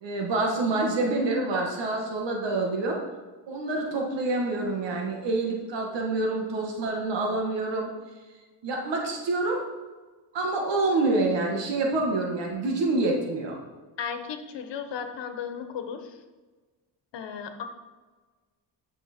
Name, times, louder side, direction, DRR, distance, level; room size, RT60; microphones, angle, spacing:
voice 1, 0.0-3.0 3.5-7.9 8.6-9.6 10.3-13.6, right 2 dB, 85° right, 0 dB, 1.9 m, -27 dB
voice 2, 14.0-16.1 17.1-17.6, left 7 dB, 80° left, 7 dB, 1.3 m, -35 dB
14.5 x 6.2 x 4.4 m, 1.3 s
cardioid pair, 105°, 42 cm